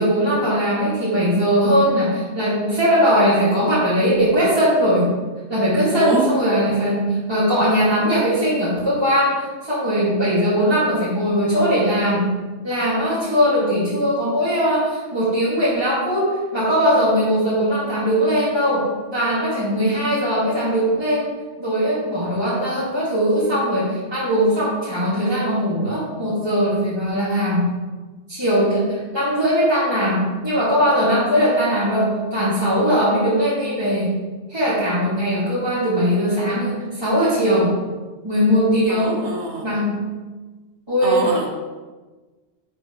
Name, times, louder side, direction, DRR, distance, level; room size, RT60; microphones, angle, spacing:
voice 1, 0.0-5.1 5.5-12.3 12.6-21.3 21.6-27.7 28.3-34.1 34.5-37.7 38.2-39.2 39.6-40.0 40.9-41.5, equal, 20° right, -10 dB, 2.3 m, -20 dB
voice 2, 5.9-6.3 38.9-39.7 41.0-41.5, right 2 dB, 70° right, 1 dB, 1.7 m, -24 dB
10.5 x 7.5 x 3.2 m, 1.3 s
omnidirectional pair, 1.2 m